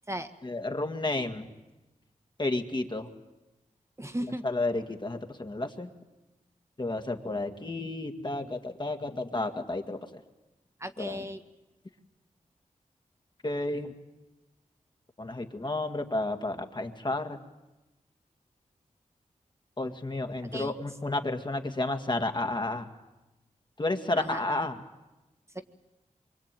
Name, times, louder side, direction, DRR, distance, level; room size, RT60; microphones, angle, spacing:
voice 1, 0.4-1.5 2.4-3.1 4.4-5.9 6.8-10.2 11.0-11.3 13.4-13.9 15.2-17.4 19.8-22.9 23.8-24.7, left 2 dB, 35° left, 5 dB, 2.1 m, -31 dB
voice 2, 4.0-4.4 10.8-11.4 20.5-20.7 24.2-24.7 25.5-25.6, right 1 dB, 20° right, 7 dB, 1.6 m, -36 dB
24.5 x 24.0 x 9.1 m, 1.1 s
cardioid pair, 60°, 14 cm